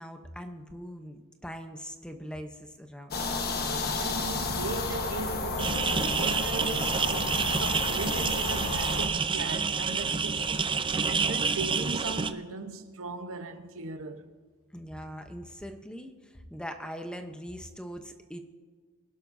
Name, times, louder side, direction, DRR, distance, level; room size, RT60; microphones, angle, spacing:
voice 1, 0.0-3.3 14.7-18.4, equal, 5° left, 0.8 m, -41 dB
sound 1, 3.1-9.1, left 3 dB, 45° left, 1.3 m, -32 dB
voice 2, 4.0-14.3, right 3 dB, 65° right, 1.1 m, -38 dB
sound 2, 5.6-12.3, right 5 dB, 20° right, 0.5 m, -28 dB
24.5 x 12.0 x 2.7 m
head